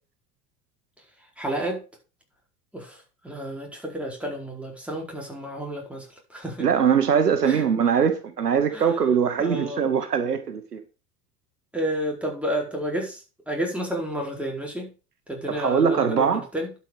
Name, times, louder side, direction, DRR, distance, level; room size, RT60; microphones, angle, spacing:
voice 1, 1.4-1.8 2.7-6.7 7.4-7.6 8.7-9.0 9.4-9.9 11.7-14.9 15.3-16.7, equal, 5° right, 4.5 m, -31 dB
voice 2, 6.6-10.8 15.5-16.4, right 7 dB, 90° right, 1.1 m, -22 dB
11.5 x 5.7 x 5.3 m
figure-of-eight pair, 75°, 46 cm